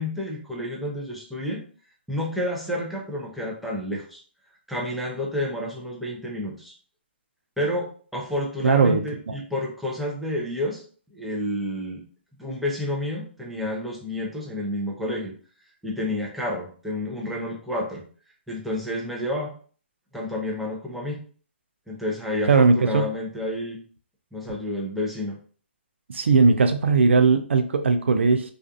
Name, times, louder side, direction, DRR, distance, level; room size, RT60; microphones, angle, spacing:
voice 1, 0.0-1.6 2.1-4.2 4.7-6.7 7.6-10.8 11.1-12.0 12.4-15.3 15.8-18.0 18.5-19.5 20.1-21.2 21.9-23.8 24.3-25.4, left 1 dB, ahead, -3 dB, 0.5 m, -30 dB
voice 2, 8.6-9.0 9.3-9.4 22.5-23.1 26.1-28.5, right 4 dB, 90° right, 7 dB, 0.4 m, -18 dB
2.4 x 2.4 x 2.4 m, 0.42 s
hypercardioid pair, 145°, 6 cm